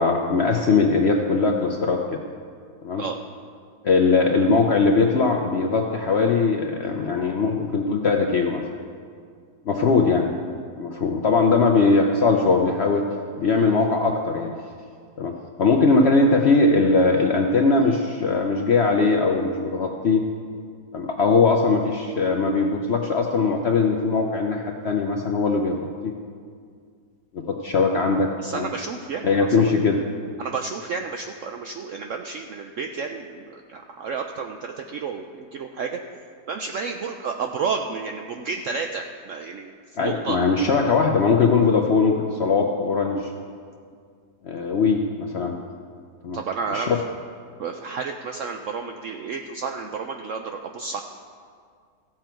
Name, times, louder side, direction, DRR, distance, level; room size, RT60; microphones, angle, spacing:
voice 1, 0.0-2.2 2.8-3.0 3.8-8.6 9.7-10.3 10.8-13.0 13.4-14.5 15.2-15.3 15.6-20.2 20.9-25.8 26.0-26.1 27.3-28.7 29.2-30.0 40.0-43.3 44.4-45.5 46.2-46.4 46.7-47.0, left 4 dB, 60° left, 2 dB, 0.7 m, -20 dB
voice 2, 28.4-29.7 30.4-36.0 36.5-40.4 46.3-46.9 47.6-51.0, right 5 dB, 75° right, 4 dB, 0.7 m, -31 dB
15.0 x 7.5 x 4.4 m, 2.1 s
omnidirectional pair, 1.8 m